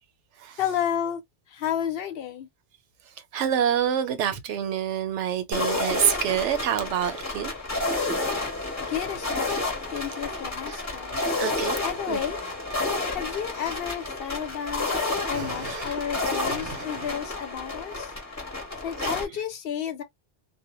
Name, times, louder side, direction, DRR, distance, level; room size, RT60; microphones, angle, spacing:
voice 1, 0.6-1.2 1.5-2.5 8.9-9.6 9.9-11.2 11.8-12.4 13.1-14.9 15.3-18.1 18.8-20.0, left 9 dB, 60° left, 0.9 m, -31 dB
voice 2, 3.3-7.5 10.6-10.8 11.4-11.8 12.1-12.2 15.3-15.9 16.4-17.1 19.0-19.2, right 9 dB, 85° right, 0.9 m, -27 dB
sound 1, 5.5-19.2, left 2 dB, 15° left, 0.8 m, -30 dB
2.1 x 2.1 x 2.9 m
omnidirectional pair, 1.2 m